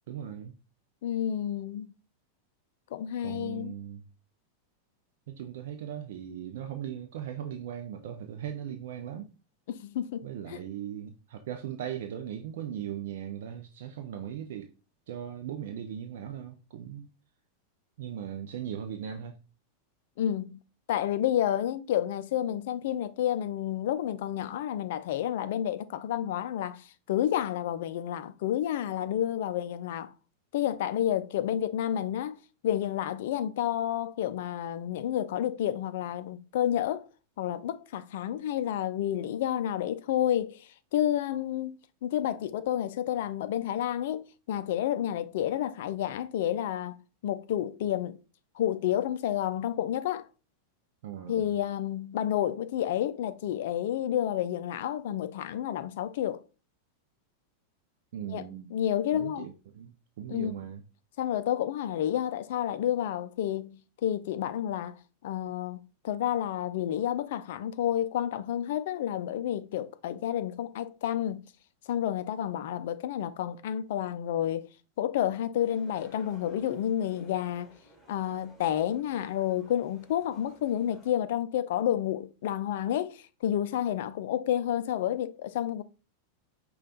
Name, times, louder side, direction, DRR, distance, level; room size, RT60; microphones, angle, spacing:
voice 1, 0.1-0.5 3.2-4.1 5.3-9.3 10.2-14.7 15.1-17.1 18.0-19.4 51.0-51.5 58.1-58.7 59.1-60.8, right 9 dB, 55° right, 0.4 m, -38 dB
voice 2, 1.0-1.9 2.9-3.7 9.7-10.2 10.5-10.6 20.2-20.6 20.9-30.1 30.5-32.4 32.6-37.0 37.4-47.0 47.2-48.2 48.6-50.3 51.3-56.4 58.3-58.4 58.7-59.5 60.3-60.6 61.2-65.0 65.2-71.4 71.9-74.7 75.0-77.7 78.1-85.8, left 11 dB, 55° left, 0.4 m, -30 dB
sound 1, 75.6-81.1, equal, 5° left, 1.8 m, -57 dB
5.3 x 2.3 x 3.9 m
figure-of-eight pair, 90°, 0 cm